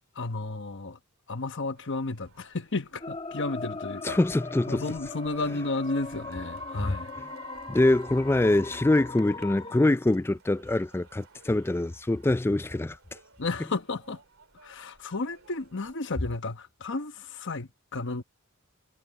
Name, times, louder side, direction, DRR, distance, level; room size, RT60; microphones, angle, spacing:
voice 1, 0.1-1.0 1.3-4.2 4.7-7.1 13.4-14.2 14.6-18.2, left 3 dB, 60° left, 1.1 m, -33 dB
sound 1, 1.7-16.0, right 5 dB, 70° right, 2.9 m, -54 dB
sound 2, 3.0-9.9, left 3 dB, 25° left, 2.2 m, -39 dB
voice 2, 4.0-4.9 6.8-7.0 7.7-13.0, left 2 dB, 10° left, 0.3 m, -24 dB
head